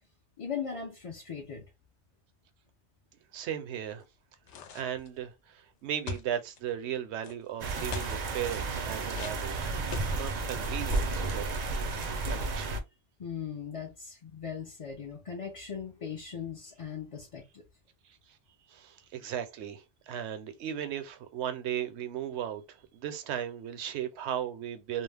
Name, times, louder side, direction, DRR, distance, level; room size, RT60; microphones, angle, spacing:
voice 1, 0.4-1.7 13.2-17.6, left 7 dB, 45° left, 0.4 m, -39 dB
voice 2, 3.3-4.0 4.7-9.7 10.1-11.7 12.3-12.8 18.1-18.2 18.7-25.0, right 10 dB, 75° right, 0.8 m, -36 dB
sound 1, 4.5-5.2 6.1-6.6 7.2-7.3 7.9-8.2 9.1-10.4 10.8-11.2, left 4 dB, 90° left, 0.9 m, -41 dB
sound 2, 7.6-12.8, right 3 dB, 55° right, 0.5 m, -32 dB
2.3 x 2.0 x 3.3 m
omnidirectional pair, 1.2 m